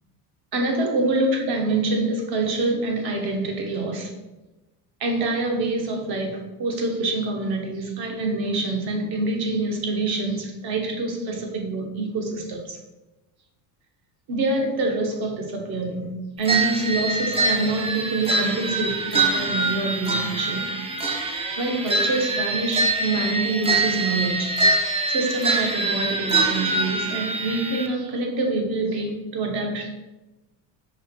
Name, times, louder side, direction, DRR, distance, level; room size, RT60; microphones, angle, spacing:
voice 1, 0.5-4.1 5.0-12.8 14.3-16.1 16.4-20.6 21.6-24.6 25.1-29.9, right 2 dB, 55° right, 2 dB, 1.1 m, -26 dB
sound 1, 16.5-27.9, right 3 dB, 15° right, 0.4 m, -24 dB
4.8 x 2.2 x 4.2 m, 1.0 s
supercardioid pair, 90°, 46 cm